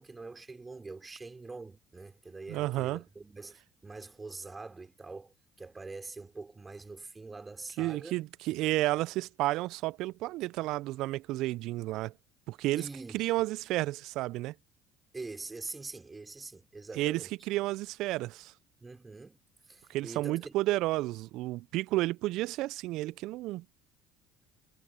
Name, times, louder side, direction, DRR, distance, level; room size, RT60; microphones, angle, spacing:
voice 1, 0.0-8.2 12.8-13.3 15.1-17.3 18.8-19.4 19.7-20.6, right 3 dB, 20° right, 5.9 m, -44 dB
voice 2, 2.5-3.0 7.8-12.1 12.5-12.9 13.1-14.5 17.0-18.5 19.9-23.6, right 17 dB, 65° right, 0.7 m, -31 dB
hypercardioid pair, 60°, 0 cm